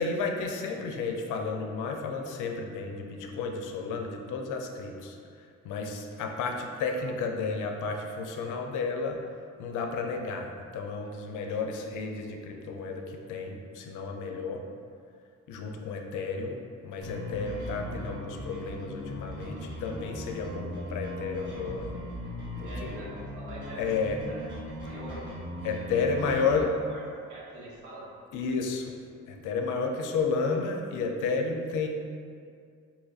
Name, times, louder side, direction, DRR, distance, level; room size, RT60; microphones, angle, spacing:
voice 1, 0.0-9.2 9.6-14.6 15.5-21.9 22.6-22.9 23.8-24.2 25.6-26.7 28.3-29.0 29.3-31.9, left 4 dB, 85° left, 3 dB, 0.5 m, -32 dB
sound 1, 17.0-26.6, left 1 dB, 40° right, 1.2 m, -39 dB
voice 2, 22.6-23.9 24.3-24.5 24.8-25.2 25.8-26.6 26.9-27.0 27.3-28.1, right 1 dB, 85° right, -5 dB, 0.9 m, -44 dB
2.8 x 2.4 x 3.9 m, 2.3 s
cardioid pair, 90°, 30 cm